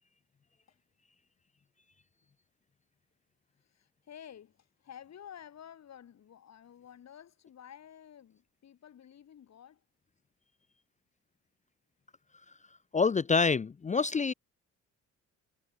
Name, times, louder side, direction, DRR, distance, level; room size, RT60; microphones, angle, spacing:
voice 1, 3.6-9.9, left 9 dB, 60° left, 6.9 m, -52 dB
voice 2, 12.9-14.3, left 4 dB, 25° left, 0.6 m, -26 dB
cardioid pair, 90°, 30 cm